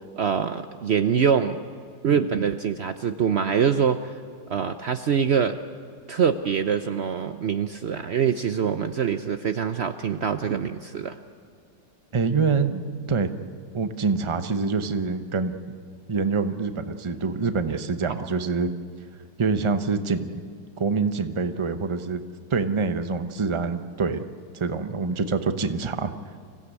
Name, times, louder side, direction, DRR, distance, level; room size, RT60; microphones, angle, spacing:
voice 1, 0.2-1.6 2.0-4.2 4.5-5.6 6.1-11.2 18.1-18.3, right 7 dB, 90° right, 8 dB, 0.5 m, -24 dB
voice 2, 12.1-12.8 13.1-13.3 13.7-15.6 16.1-18.7 19.4-20.4 20.8-22.2 22.5-24.2 24.5-26.1, right 4 dB, 35° right, 9 dB, 0.5 m, -25 dB
26.0 x 16.5 x 8.3 m, 2.1 s
omnidirectional pair, 2.0 m